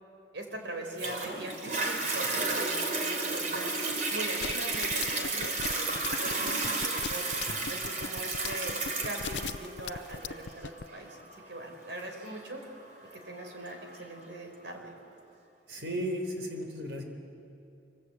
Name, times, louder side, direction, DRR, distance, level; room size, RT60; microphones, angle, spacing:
voice 1, 0.3-3.7 4.1-7.2 7.7-8.8 9.0-12.6 13.1-14.9, right 1 dB, 90° right, 3 dB, 4.6 m, -41 dB
Toilet flush, 1.0-14.0 14.6-14.7, right 3 dB, 45° right, 3.3 m, -33 dB
sound 1, 4.4-10.8, left 6 dB, 75° left, 0.6 m, -37 dB
voice 2, 15.7-17.0, equal, 75° right, 4 dB, 4.1 m, -35 dB
25.5 x 25.0 x 8.3 m, 2.5 s
head